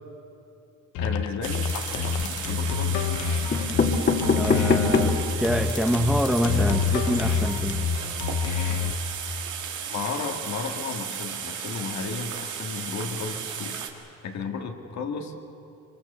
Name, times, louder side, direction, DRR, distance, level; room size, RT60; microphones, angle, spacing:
sound 1, 0.9-9.0, left 6 dB, 85° left, 1.1 m, -27 dB
voice 1, 1.0-3.1 6.5-7.6 9.9-13.8 14.2-15.3, left 5 dB, 65° left, 3 dB, 2.2 m, -34 dB
sound 2, 1.4-13.9, right 8 dB, 80° right, 2.2 m, -35 dB
sound 3, 1.8-2.4 3.1-3.2 3.5-5.3 5.8-5.9 6.1-6.2 6.5-6.7, left 4 dB, 35° left, 2.3 m, -24 dB
voice 2, 4.4-7.9, equal, ahead, 6 dB, 1.2 m, -26 dB
24.0 x 23.0 x 6.9 m, 2.8 s
cardioid pair, 90°, 30 cm